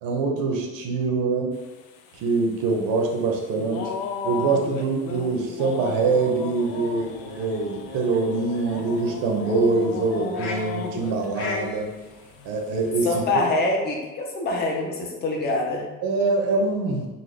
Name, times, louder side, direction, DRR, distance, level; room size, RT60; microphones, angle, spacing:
voice 1, 0.0-1.5 2.2-3.9 4.2-11.9 12.4-13.2 16.0-17.1, right 3 dB, 65° right, 1 dB, 0.7 m, -24 dB
sound 1, 1.5-12.1 12.5-13.1, left 6 dB, 85° left, 0.5 m, -35 dB
sound 2, 6.6-13.2, left 2 dB, 45° left, 0.8 m, -42 dB
voice 2, 13.0-15.8, left 2 dB, 30° left, 0 dB, 0.5 m, -25 dB
3.9 x 2.1 x 3.2 m, 1.2 s
cardioid pair, 170°, 37 cm